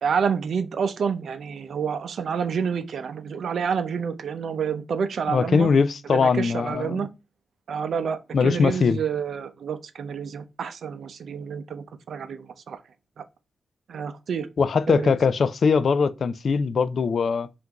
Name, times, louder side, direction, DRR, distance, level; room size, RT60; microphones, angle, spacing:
voice 1, 0.0-5.7 6.1-7.1 7.7-12.8 13.2-13.3 13.9-14.5 14.9-15.1, right 6 dB, 80° right, 0.5 m, -28 dB
voice 2, 5.3-7.1 8.3-9.0 14.6-17.5, left 5 dB, 60° left, 0.3 m, -21 dB
5.7 x 2.6 x 2.9 m
wide cardioid pair, 145°, 0 cm